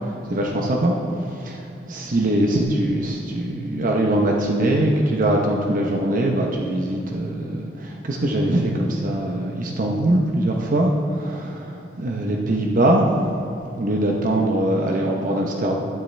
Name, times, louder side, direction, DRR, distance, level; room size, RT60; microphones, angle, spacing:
voice 1, 0.0-0.9 1.4-11.7 12.0-13.2 13.8-15.7, right 1 dB, 50° right, 0 dB, 0.8 m, -22 dB
12.5 x 9.8 x 3.3 m, 2.7 s
head